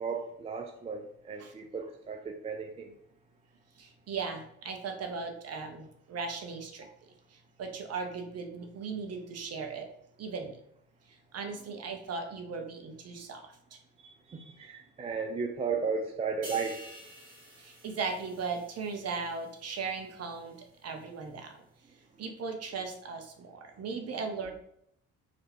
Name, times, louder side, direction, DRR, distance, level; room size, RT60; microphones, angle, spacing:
voice 1, 0.0-2.9 14.0-16.9, right 5 dB, 15° right, 3 dB, 0.3 m, -35 dB
voice 2, 3.8-6.9 7.3-9.9 10.2-10.6 11.1-13.8 17.6-21.6 22.2-24.5, right 4 dB, 35° right, 4 dB, 0.9 m, -38 dB
sound 1, 16.4-20.0 20.3-20.6, right 1 dB, 80° right, 1.7 m, -50 dB
4.9 x 2.6 x 3.4 m, 0.72 s
figure-of-eight pair, 45°, 42 cm